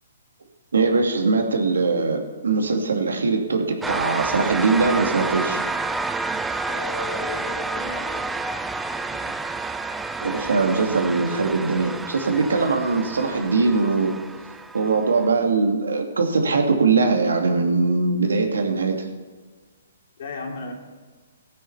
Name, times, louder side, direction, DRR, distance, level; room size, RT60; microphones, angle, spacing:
voice 1, 0.7-5.6 10.2-14.1 14.7-18.9, right 4 dB, 90° right, 3 dB, 2.4 m, -21 dB
sound 1, 3.8-15.3, right 3 dB, 5° right, 0.4 m, -29 dB
voice 2, 6.7-8.4 20.2-20.7, left 3 dB, 55° left, 1 dB, 3.0 m, -34 dB
15.5 x 8.5 x 5.7 m, 1.4 s
hypercardioid pair, 150°, 0 cm